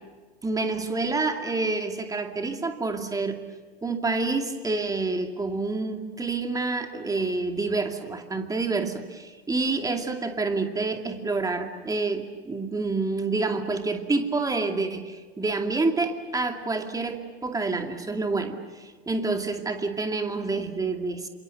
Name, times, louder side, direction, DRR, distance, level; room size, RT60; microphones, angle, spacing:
voice 1, 0.4-3.4 3.8-21.3, right 3 dB, 10° right, 5 dB, 2.5 m, -28 dB
28.5 x 26.5 x 6.6 m, 1.4 s
figure-of-eight pair, 85°, 31 cm